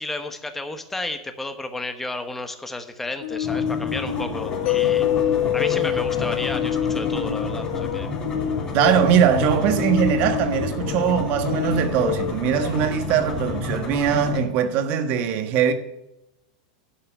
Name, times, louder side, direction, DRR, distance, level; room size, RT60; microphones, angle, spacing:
voice 1, 0.0-8.1, left 2 dB, 5° left, 1.1 m, -32 dB
sound 1, 3.2-13.0, left 9 dB, 80° left, 1.3 m, -29 dB
sound 2, 3.4-14.4, left 3 dB, 20° left, 2.7 m, -30 dB
Mallet percussion, 4.7-8.4, left 13 dB, 45° left, 0.4 m, -25 dB
voice 2, 8.7-15.7, right 8 dB, 45° right, 1.4 m, -21 dB
11.5 x 5.7 x 7.9 m
supercardioid pair, 135°, 4 cm